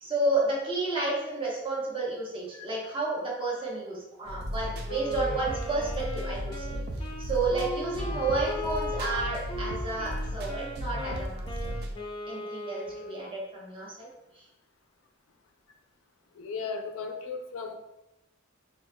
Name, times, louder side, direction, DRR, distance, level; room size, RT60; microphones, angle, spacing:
voice 1, 0.0-6.7 7.2-11.7 12.3-14.1, right 2 dB, 25° right, -4 dB, 1.0 m, -31 dB
sound 1, 4.3-11.9, equal, 50° right, 0.5 m, -35 dB
Wind instrument woodwind instrument, 4.9-13.3, left 2 dB, 25° left, 0.5 m, -38 dB
voice 2, 16.4-17.8, left 5 dB, 75° left, 5 dB, 0.4 m, -36 dB
5.8 x 2.5 x 2.2 m, 0.91 s
head